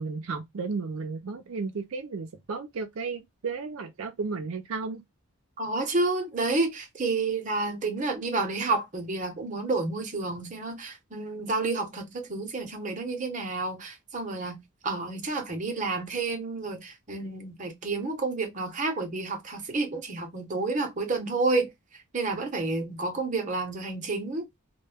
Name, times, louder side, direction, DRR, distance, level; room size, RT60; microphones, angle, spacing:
voice 1, 0.0-5.0, right 4 dB, 75° right, 0.4 m, -33 dB
voice 2, 5.6-24.4, right 3 dB, 35° right, 0.7 m, -30 dB
2.2 x 2.1 x 3.2 m
head